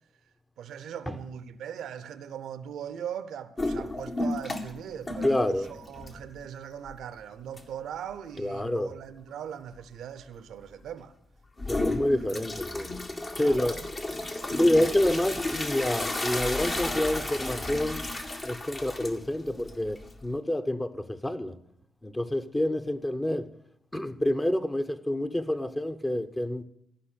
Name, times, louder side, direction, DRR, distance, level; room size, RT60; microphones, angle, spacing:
voice 1, 0.6-11.1 13.4-13.8, right 9 dB, 75° right, 0.7 m, -40 dB
sound 1, 3.6-4.8 5.1-6.4 6.9-7.0 7.6-7.7 11.6-20.4, left 2 dB, 45° left, 2.0 m, -33 dB
voice 2, 5.2-5.7 8.4-9.0 11.7-12.9 13.4-13.8 14.6-18.0 18.4-21.6 22.0-23.5 23.9-26.6, left 1 dB, 20° left, 1.1 m, -28 dB
14.5 x 5.7 x 8.4 m
hypercardioid pair, 40°, 0 cm